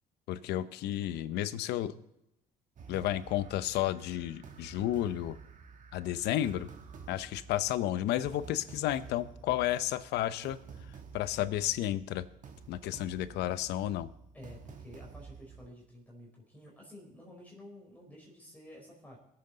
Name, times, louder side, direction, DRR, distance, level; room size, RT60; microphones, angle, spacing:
voice 1, 0.3-1.9 2.9-5.4 5.9-6.7 7.1-10.6 11.1-12.2 12.7-14.1, left 13 dB, 85° left, 14 dB, 0.7 m, -32 dB
sound 1, 2.8-15.7, right 6 dB, 45° right, 1.5 m, -51 dB
voice 2, 14.3-19.2, left 1 dB, 10° left, -3 dB, 4.3 m, -51 dB
22.0 x 8.0 x 4.0 m, 0.83 s
cardioid pair, 110°, 17 cm